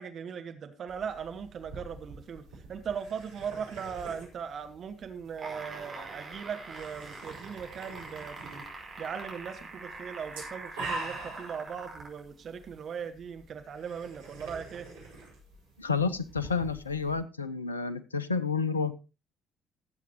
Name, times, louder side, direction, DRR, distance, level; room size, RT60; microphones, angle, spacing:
voice 1, 0.0-2.4 2.7-8.6 9.0-14.9, right 7 dB, 50° right, 7 dB, 1.3 m, -39 dB
sound 1, 0.9-17.2, right 2 dB, 75° right, 5.0 m, -46 dB
sound 2, 5.3-12.2 13.0-13.1, right 3 dB, 30° right, 5.1 m, -44 dB
voice 2, 15.8-18.9, left 5 dB, 85° left, 16 dB, 0.6 m, -30 dB
18.5 x 8.1 x 2.9 m, 0.30 s
figure-of-eight pair, 50°, 0 cm